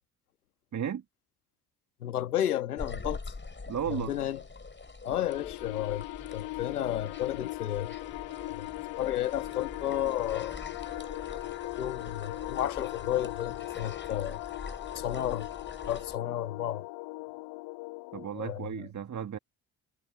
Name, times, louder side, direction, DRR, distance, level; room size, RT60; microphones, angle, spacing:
voice 1, 0.7-1.0 3.7-4.1 18.1-19.4, right 8 dB, 40° right, 1.8 m, -34 dB
voice 2, 2.0-3.2 3.9-4.4 5.0-6.1 6.3-8.0 8.5-8.7 9.0-10.6 11.8-14.4 15.0-15.5 15.9-16.9 18.3-18.7, left 12 dB, 85° left, 1.9 m, -32 dB
sound 1, 2.8-16.1, left 3 dB, 25° left, 6.1 m, -44 dB
sound 2, 5.3-18.3, left 25 dB, 70° left, 1.1 m, -40 dB
figure-of-eight pair, 40°, 44 cm